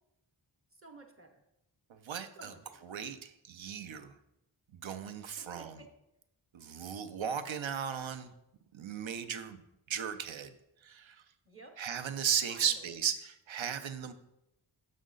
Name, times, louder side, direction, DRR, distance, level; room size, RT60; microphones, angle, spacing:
voice 1, 0.7-1.4 2.4-2.8 5.4-5.9 11.4-11.8 12.5-13.0, right 2 dB, 30° right, 3 dB, 0.8 m, -53 dB
voice 2, 1.9-2.5 2.8-4.1 4.7-5.7 6.5-8.3 8.7-9.6 9.9-10.5 10.8-11.2 11.8-14.1, right 8 dB, 70° right, 10 dB, 0.6 m, -36 dB
6.4 x 6.0 x 3.9 m, 0.85 s
wide cardioid pair, 90°, 48 cm